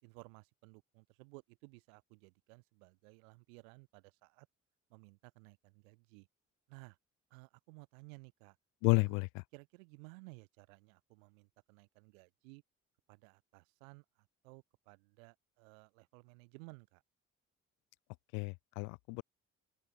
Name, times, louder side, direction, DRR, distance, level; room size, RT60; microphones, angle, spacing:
voice 1, 0.0-4.5 4.9-6.3 6.7-7.0 7.3-8.6 9.0-9.2 9.5-12.6 13.1-17.0, right 31 dB, 70° right, 5.2 m, -57 dB
voice 2, 8.8-9.4 18.3-19.2, left 37 dB, 60° left, 0.5 m, -31 dB
open air
figure-of-eight pair, 40°, 41 cm